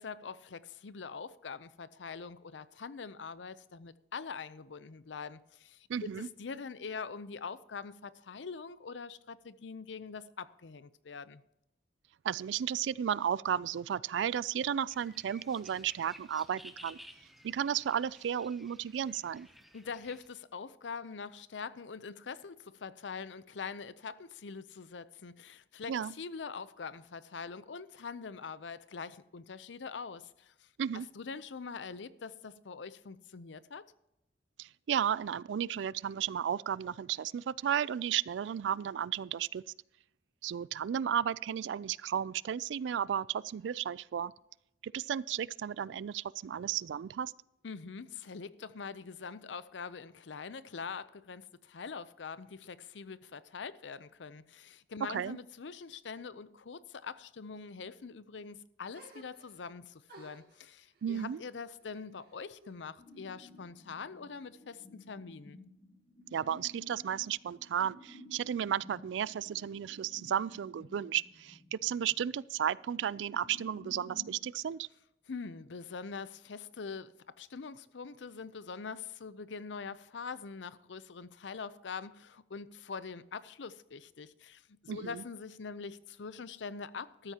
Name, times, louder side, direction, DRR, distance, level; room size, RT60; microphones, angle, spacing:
voice 1, 0.0-5.9 6.2-11.4 19.7-30.7 31.1-33.8 47.6-65.6 75.3-87.3, left 5 dB, 85° left, 0.6 m, -44 dB
voice 2, 5.9-6.3 12.2-17.0 17.4-19.5 25.9-26.1 30.8-31.1 34.6-39.6 40.4-44.3 44.8-47.3 55.1-55.4 61.0-61.4 66.3-74.9 84.9-85.2, right 9 dB, 85° right, 0.3 m, -34 dB
sound 1, 14.9-20.3, equal, ahead, 0.7 m, -55 dB
sound 2, 58.9-59.7 60.1-62.8 63.1-64.0, right 2 dB, 60° right, 2.6 m, -58 dB
sound 3, 63.0-74.4, left 1 dB, 35° left, 1.9 m, -55 dB
13.5 x 13.0 x 2.9 m
head